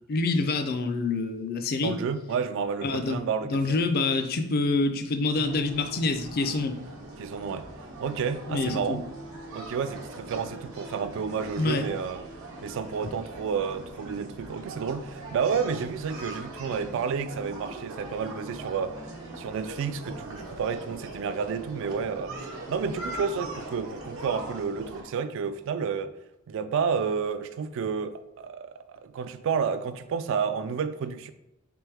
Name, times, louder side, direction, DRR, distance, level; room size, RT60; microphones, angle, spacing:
voice 1, 0.1-1.9 2.8-6.8 8.5-9.0 11.6-11.9, left 3 dB, 45° left, 0.4 m, -27 dB
voice 2, 1.8-3.8 7.2-7.7 8.0-9.1 9.5-12.2 12.6-19.0 19.4-26.2 26.5-31.3, right 6 dB, 65° right, 0.3 m, -30 dB
sound 1, 5.3-25.0, right 2 dB, 80° right, 0.9 m, -41 dB
3.4 x 3.0 x 3.3 m
head